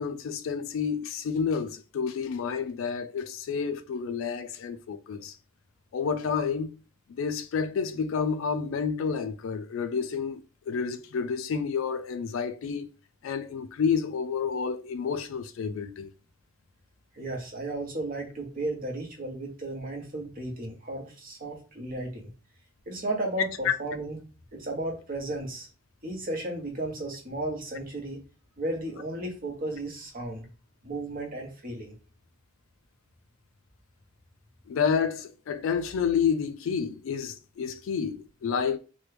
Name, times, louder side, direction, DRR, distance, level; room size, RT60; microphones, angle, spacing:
voice 1, 0.0-5.3 5.9-6.7 7.1-12.9 13.2-16.1 23.6-23.7 34.7-38.8, left 6 dB, 70° left, 0.3 m, -29 dB
voice 2, 17.1-22.3 22.9-24.2 24.5-25.7 26.0-28.2 28.6-30.5 30.8-31.9, right 2 dB, 45° right, 1.0 m, -34 dB
3.0 x 2.2 x 3.2 m
head